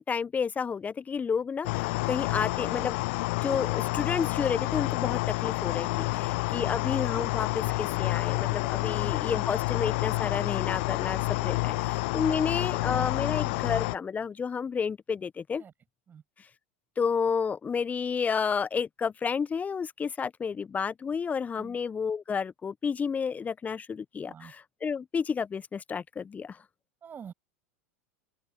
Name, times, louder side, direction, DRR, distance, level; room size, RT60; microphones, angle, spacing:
voice 1, 0.0-3.0 3.4-15.6 17.0-24.6 24.8-26.6, left 6 dB, 20° left, 0.8 m, -31 dB
sound 1, 1.6-14.0, left 25 dB, 55° left, 0.6 m, -29 dB
voice 2, 6.1-6.4 8.8-9.0 11.6-11.9 12.2-12.3 15.6-15.7 16.1-16.2 21.5-21.8 24.2-24.5 27.0-27.3, right 7 dB, 25° right, 7.3 m, -48 dB
open air
figure-of-eight pair, 85°, 7 cm